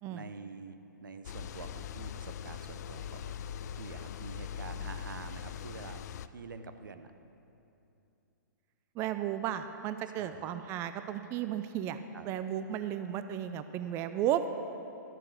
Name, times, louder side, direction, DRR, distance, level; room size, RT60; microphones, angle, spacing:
voice 1, 0.1-3.3 3.7-6.0 6.3-7.1 10.1-10.5 12.1-12.3, right 5 dB, 80° right, 9 dB, 0.8 m, -47 dB
sound 1, 1.2-6.3, left 9 dB, 60° left, 0.4 m, -41 dB
voice 2, 9.0-14.5, right 11 dB, 25° right, 10 dB, 0.4 m, -34 dB
12.5 x 7.4 x 6.4 m, 2.8 s
hypercardioid pair, 135°, 11 cm